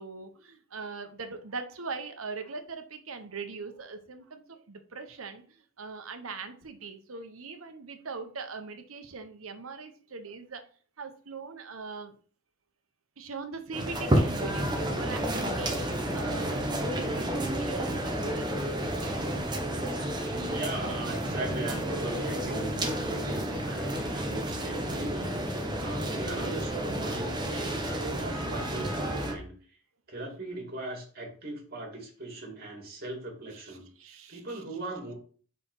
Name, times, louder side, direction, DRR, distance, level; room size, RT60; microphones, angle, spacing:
voice 1, 0.0-10.6 11.0-12.2 13.2-19.2 33.7-34.6, right 4 dB, 85° right, 7 dB, 1.0 m, -41 dB
sound 1, 13.7-29.3, right 1 dB, 20° right, 1.1 m, -31 dB
voice 2, 20.5-29.8 30.1-33.9 34.3-35.1, right 2 dB, 50° right, 1 dB, 2.6 m, -39 dB
5.2 x 4.6 x 5.5 m, 0.43 s
head